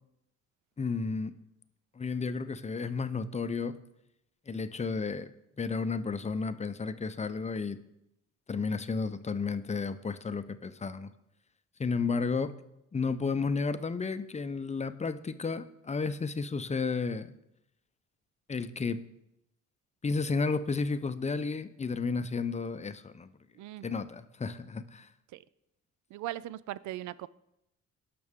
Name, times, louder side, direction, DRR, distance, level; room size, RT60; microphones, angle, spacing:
voice 1, 0.8-1.3 2.0-3.8 4.5-5.3 5.6-7.8 8.5-11.1 11.8-12.5 12.9-17.3 18.5-19.0 20.0-23.3 23.8-25.1, left 4 dB, 25° left, 12 dB, 0.6 m, -32 dB
voice 2, 23.6-24.1 25.3-25.4 26.1-27.3, right 14 dB, 70° right, 19 dB, 0.5 m, -39 dB
18.0 x 6.0 x 3.6 m, 0.84 s
cardioid pair, 90°, 30 cm